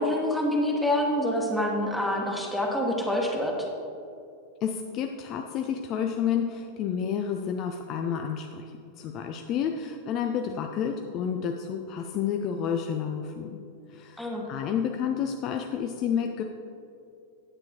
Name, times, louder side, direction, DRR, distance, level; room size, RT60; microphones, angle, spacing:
voice 1, 0.0-3.7 14.2-14.4, left 1 dB, ahead, -1 dB, 1.2 m, -26 dB
voice 2, 4.6-13.6 13.9-16.4, left 8 dB, 35° left, 5 dB, 0.4 m, -30 dB
9.8 x 8.7 x 2.9 m, 2.5 s
figure-of-eight pair, 90°, 0 cm